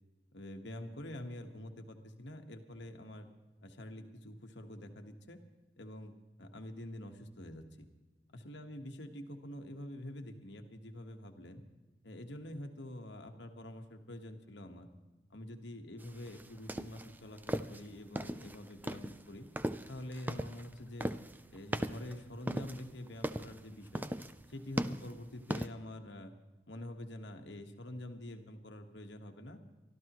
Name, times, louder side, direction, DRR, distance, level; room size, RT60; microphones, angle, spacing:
voice 1, 0.3-3.3 3.6-5.4 5.8-7.9 8.3-11.6 12.0-14.9 15.3-19.5 19.9-21.1 21.5-24.1 24.5-26.3 26.7-29.6, left 1 dB, 70° left, 5 dB, 1.4 m, -46 dB
sound 1, 16.0-25.7, right 1 dB, 10° right, 0.4 m, -39 dB
24.0 x 13.5 x 3.1 m, 1.2 s
head